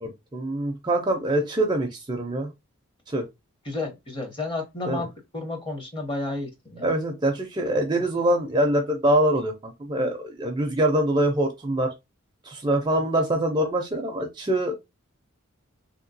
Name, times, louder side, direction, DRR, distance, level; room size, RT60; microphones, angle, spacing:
voice 1, 0.0-2.5 3.1-3.3 4.9-5.0 6.8-11.9 12.4-14.8, right 1 dB, 20° right, 0.4 m, -24 dB
voice 2, 3.6-6.9, left 2 dB, 25° left, 0.8 m, -32 dB
3.1 x 2.9 x 2.6 m
head